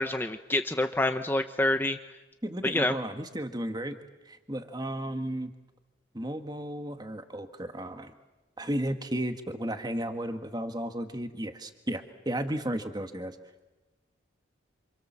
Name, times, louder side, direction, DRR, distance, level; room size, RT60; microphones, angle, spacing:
voice 1, 0.0-2.0 2.6-2.9, left 1 dB, 10° left, 7 dB, 0.9 m, -27 dB
voice 2, 2.4-4.0 4.3-5.5 6.1-8.1 8.6-13.4, right 1 dB, 20° right, 7 dB, 1.7 m, -34 dB
28.5 x 28.0 x 7.5 m, 1.1 s
head